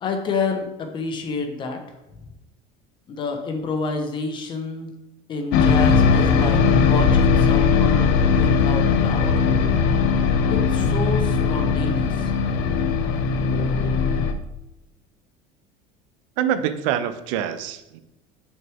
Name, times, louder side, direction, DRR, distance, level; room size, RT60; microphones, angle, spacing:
voice 1, 0.0-1.8 3.1-4.9 5.3-8.1 8.4-9.4 10.5-12.3, left 4 dB, 30° left, 5 dB, 1.0 m, -28 dB
sound 1, 5.5-14.3, left 5 dB, 65° left, 0.7 m, -19 dB
voice 2, 16.4-18.0, right 10 dB, 85° right, 11 dB, 0.7 m, -25 dB
6.6 x 6.4 x 3.5 m, 0.96 s
cardioid pair, 160°, 16 cm